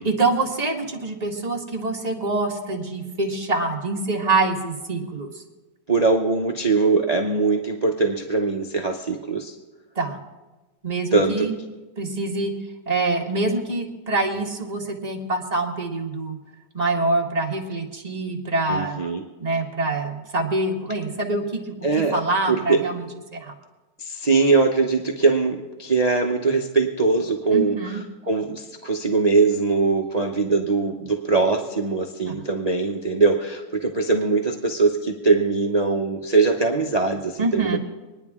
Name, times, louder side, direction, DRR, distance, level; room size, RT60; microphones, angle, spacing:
voice 1, 0.0-5.3 9.9-10.2 10.8-11.5 12.0-12.5 12.9-16.4 16.7-19.0 19.4-21.8 22.1-23.1 23.3-23.5 27.5-28.0 32.3-32.4 37.4-37.8, right 2 dB, 20° right, -1 dB, 1.5 m, -25 dB
voice 2, 5.9-9.5 11.1-11.5 18.7-19.2 21.8-22.2 22.5-22.9 24.0-28.0 28.3-37.8, right 4 dB, 65° right, 3 dB, 0.4 m, -21 dB
24.5 x 10.0 x 3.6 m, 1.2 s
omnidirectional pair, 2.2 m